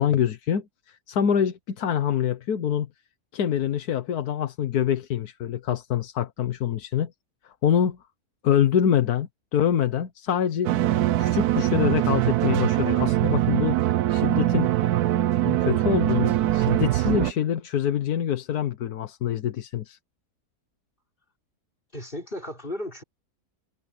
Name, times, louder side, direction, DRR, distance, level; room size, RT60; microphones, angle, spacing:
voice 1, 0.0-2.9 3.3-7.1 7.6-8.0 8.4-10.7 11.2-14.7 15.5-20.0, left 9 dB, 80° left, 1.5 m, -25 dB
sound 1, 10.6-17.3, right 14 dB, 85° right, 1.2 m, -22 dB
voice 2, 21.9-23.0, left 1 dB, 35° left, 4.9 m, -34 dB
omnidirectional pair, 1.6 m